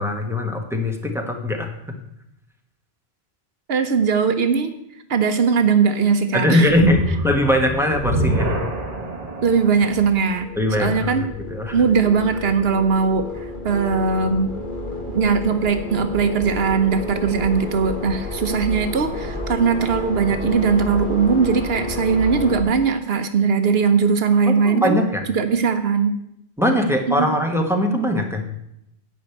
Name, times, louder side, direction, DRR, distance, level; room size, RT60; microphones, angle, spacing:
voice 1, 0.0-1.7 6.3-8.5 10.6-11.1 11.5-11.8 24.5-25.2 26.6-28.5, left 1 dB, ahead, 2 dB, 1.4 m, -21 dB
voice 2, 3.7-4.7 5.1-6.7 9.4-10.5 10.8-11.2 11.7-13.3 13.6-14.5 15.1-25.0 25.3-26.1 27.1-27.3, right 5 dB, 75° right, 8 dB, 1.0 m, -19 dB
sound 1, 6.7-12.0, right 1 dB, 40° right, 1.6 m, -27 dB
sound 2, 8.9-22.6, left 2 dB, 50° left, 2.1 m, -31 dB
10.0 x 5.3 x 8.3 m, 0.80 s
omnidirectional pair, 1.0 m